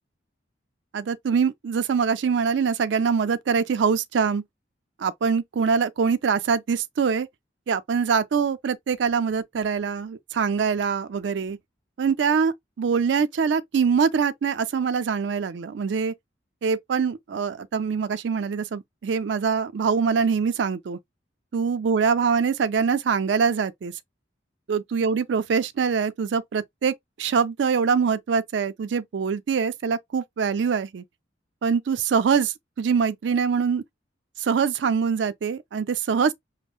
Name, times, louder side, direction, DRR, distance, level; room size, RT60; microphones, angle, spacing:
voice 1, 0.9-4.4 5.0-7.3 7.7-11.6 12.0-16.1 16.6-21.0 21.5-23.9 24.7-31.0 31.6-33.8 34.4-36.3, right 6 dB, 65° right, 0.4 m, -24 dB
5.3 x 2.0 x 2.3 m
head